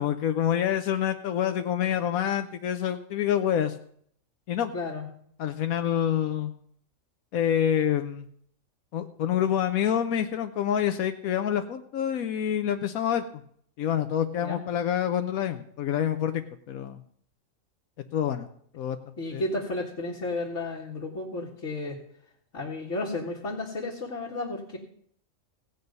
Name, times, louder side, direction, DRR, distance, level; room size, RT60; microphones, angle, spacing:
voice 1, 0.0-3.7 4.5-4.7 5.4-6.5 7.3-8.3 8.9-13.4 13.8-16.4 16.7-17.0 18.1-18.5 18.7-19.4, left 9 dB, 90° left, 7 dB, 1.2 m, -27 dB
voice 2, 4.7-5.1 14.4-14.6 19.2-22.0 22.5-24.8, left 2 dB, 60° left, -7 dB, 2.3 m, -33 dB
16.5 x 8.7 x 5.4 m, 0.64 s
omnidirectional pair, 1.4 m